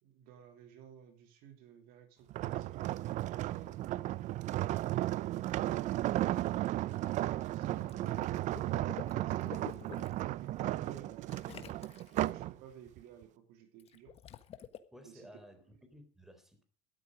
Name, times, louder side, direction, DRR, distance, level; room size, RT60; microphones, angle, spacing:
voice 1, 0.0-4.2 4.7-8.2 8.9-9.7 10.2-11.5 12.3-14.2 15.0-15.3, right 8 dB, 70° right, 3.0 m, -55 dB
sound 1, 2.3-12.5 13.0-13.2, right 15 dB, 50° right, 0.5 m, -34 dB
Water / Liquid, 7.7-10.2 11.3-12.3 13.8-14.8, left 9 dB, 40° left, 1.5 m, -49 dB
voice 2, 14.9-16.6, equal, 5° right, 3.8 m, -56 dB
13.0 x 12.5 x 5.0 m
cardioid pair, 130°, 16 cm